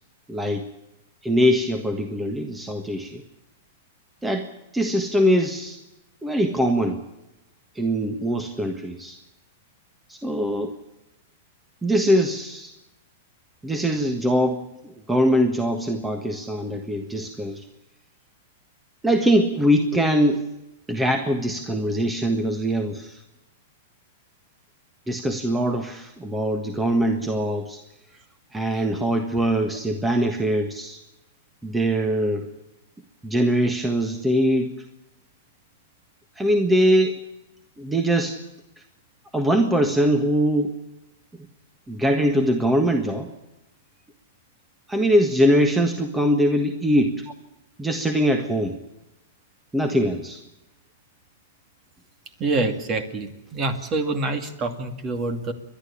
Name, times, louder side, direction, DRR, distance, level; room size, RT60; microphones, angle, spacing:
voice 1, 0.3-0.7 1.2-3.2 4.2-4.5 4.7-5.8 6.2-7.0 7.7-9.2 10.1-10.8 11.8-12.7 13.6-14.6 15.1-17.6 19.0-20.4 20.9-23.2 25.1-27.8 28.5-31.0 31.6-32.5 33.2-34.7 36.4-37.2 37.8-38.4 39.3-40.7 41.9-43.3 44.9-47.2 47.8-48.8 49.7-50.4, equal, 10° right, 6 dB, 1.5 m, -22 dB
voice 2, 52.4-55.5, right 3 dB, 30° right, 9 dB, 2.5 m, -26 dB
29.0 x 12.0 x 8.5 m, 0.92 s
hypercardioid pair, 140°, 0 cm